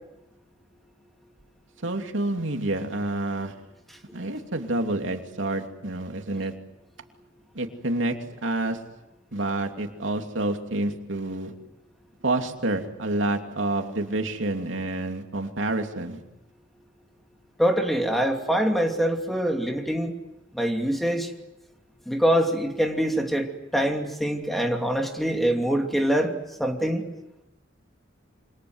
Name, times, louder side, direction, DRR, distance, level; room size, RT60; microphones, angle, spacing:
voice 1, 1.8-3.5 4.1-6.5 7.5-8.1 8.4-8.8 9.3-11.5 12.2-16.2, right 2 dB, 90° right, 4 dB, 2.9 m, -28 dB
voice 2, 17.6-20.1 20.5-21.3 22.1-23.5 23.7-26.3 26.6-27.0, equal, ahead, 3 dB, 2.7 m, -24 dB
28.0 x 26.0 x 8.0 m, 0.96 s
head